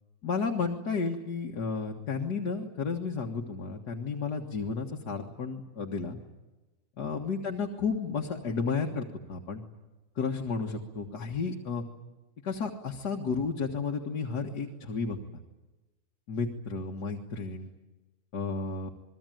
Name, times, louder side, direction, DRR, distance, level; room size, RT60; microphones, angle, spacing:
voice 1, 0.2-6.2 7.0-9.6 10.2-11.8 12.4-15.2 16.3-17.7 18.3-18.9, left 5 dB, 90° left, 1 dB, 2.2 m, -32 dB
28.5 x 21.5 x 9.2 m, 1.1 s
omnidirectional pair, 1.7 m